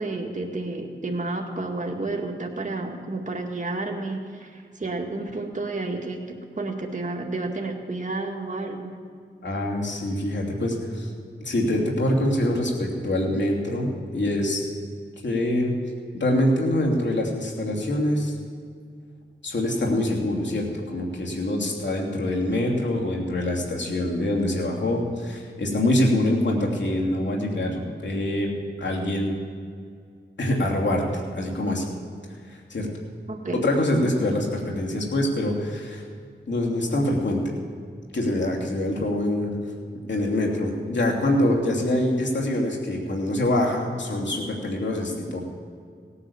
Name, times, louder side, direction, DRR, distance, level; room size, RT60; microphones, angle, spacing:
voice 1, 0.0-8.9 21.7-21.8 33.3-33.7, right 2 dB, 40° right, 1 dB, 2.1 m, -31 dB
voice 2, 9.4-11.1 11.4-14.6 15.2-15.7 16.1-18.3 19.4-29.4 30.4-31.9 32.5-32.9 33.5-36.0 36.5-37.4 38.1-39.6 40.1-45.5, left 1 dB, 65° left, -1 dB, 3.0 m, -25 dB
17.5 x 9.8 x 7.1 m, 2.1 s
cardioid pair, 45°, 20 cm